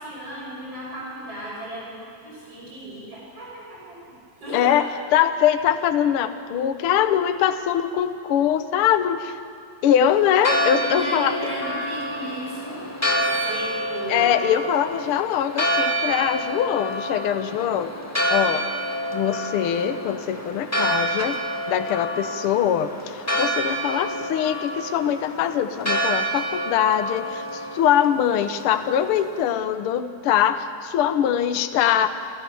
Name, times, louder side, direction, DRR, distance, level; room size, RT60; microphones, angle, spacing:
voice 1, 0.0-4.0 4.4-4.9 10.9-14.4, right 1 dB, 45° right, -7 dB, 8.2 m, -35 dB
voice 2, 4.5-4.8 5.1-9.4 9.8-11.4 14.1-17.9 18.3-18.6 19.1-21.4 21.7-32.1, left 10 dB, 90° left, 9 dB, 1.2 m, -22 dB
Church bell, 10.1-29.5, right 1 dB, 25° left, 0.3 m, -28 dB
29.0 x 14.0 x 7.0 m, 2.6 s
omnidirectional pair, 3.8 m